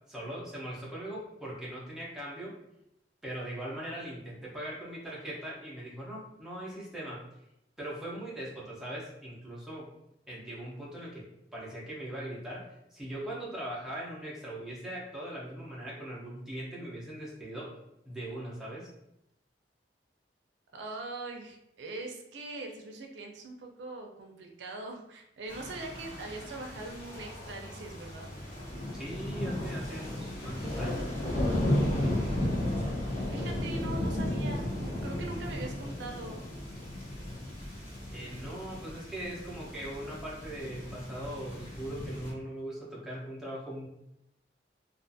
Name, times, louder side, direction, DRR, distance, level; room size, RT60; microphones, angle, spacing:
voice 1, 0.0-2.5 3.2-7.2 7.8-9.9 10.3-17.8 18.1-18.9 28.9-31.2 38.1-43.9, right 1 dB, 5° right, -6 dB, 0.6 m, -40 dB
voice 2, 20.7-28.3 33.3-36.4, right 2 dB, 80° right, 2 dB, 0.4 m, -42 dB
sound 1, 25.5-42.3, left 1 dB, 35° left, 0.9 m, -34 dB
2.4 x 2.4 x 2.6 m, 0.84 s
head